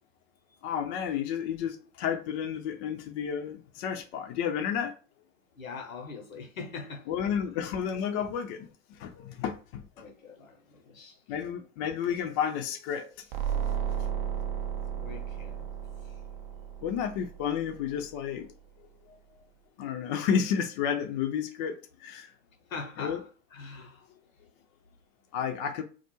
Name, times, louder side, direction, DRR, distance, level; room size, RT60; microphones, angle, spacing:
voice 1, 0.6-4.9 7.1-9.8 11.3-13.1 16.8-18.5 19.8-21.8 22.0-22.3 23.0-23.2 25.3-25.8, left 8 dB, 35° left, 0.4 m, -31 dB
voice 2, 5.6-7.1 10.0-11.2 15.0-15.7 19.1-19.4 22.7-23.2 23.5-24.1, left 4 dB, 80° left, 0.8 m, -42 dB
sound 1, 13.3-18.0, right 8 dB, 45° right, 0.5 m, -34 dB
2.3 x 2.1 x 3.0 m
figure-of-eight pair, 95°, 40 cm